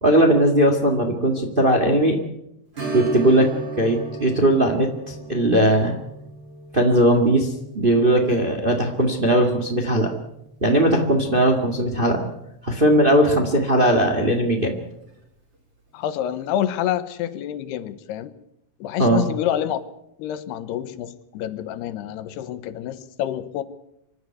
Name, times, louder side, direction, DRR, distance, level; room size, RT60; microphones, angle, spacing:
voice 1, 0.0-2.2 2.9-3.5 3.8-6.0 6.7-7.5 7.7-10.1 10.6-12.3 12.6-14.7 19.0-19.2, right 1 dB, 45° right, 4 dB, 0.6 m, -18 dB
Strum, 2.7-11.9 12.3-12.4 14.9-15.1 15.5-15.6, right 2 dB, 25° right, 4.9 m, -37 dB
voice 2, 15.9-18.3 18.8-19.8 20.2-23.6, left 11 dB, 80° left, 12 dB, 3.1 m, -27 dB
25.5 x 12.0 x 9.4 m, 0.83 s
omnidirectional pair, 4.7 m